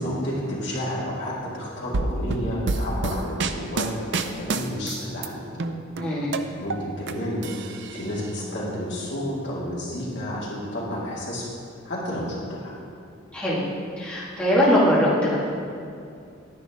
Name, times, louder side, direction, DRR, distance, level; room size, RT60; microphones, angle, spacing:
voice 1, 0.0-5.4 6.6-7.4 7.9-11.5 11.8-12.8, equal, 55° left, -6 dB, 2.3 m, -30 dB
sound 1, 1.9-5.3 5.6-7.1 7.4-8.3, right 3 dB, 55° right, 0.5 m, -28 dB
voice 2, 6.0-6.3 13.3-13.6 14.0-15.3, equal, 5° left, -10 dB, 2.1 m, -21 dB
10.5 x 10.0 x 3.6 m, 2.5 s
head